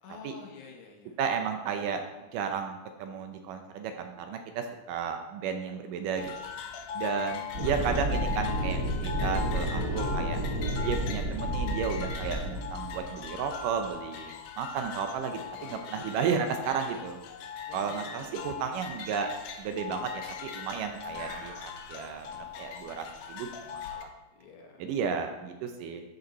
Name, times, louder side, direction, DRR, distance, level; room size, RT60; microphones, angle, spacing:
voice 1, 0.0-1.2 7.5-7.8 15.6-16.1 17.7-18.6 24.3-24.9, left 4 dB, 70° left, 1 dB, 2.3 m, -50 dB
voice 2, 1.2-6.5 6.9-10.4 10.8-17.2 17.7-19.3 19.6-22.3 22.5-24.1 24.8-26.0, right 6 dB, 75° right, 6 dB, 2.1 m, -33 dB
sound 1, 6.2-24.0, left 8 dB, 85° left, 1.5 m, -40 dB
sound 2, 7.5-13.9, right 1 dB, 30° right, 1.7 m, -31 dB
sound 3, 18.2-18.6 18.8-23.8, right 3 dB, 55° right, 1.7 m, -50 dB
12.5 x 5.2 x 4.1 m, 1.1 s
omnidirectional pair, 4.1 m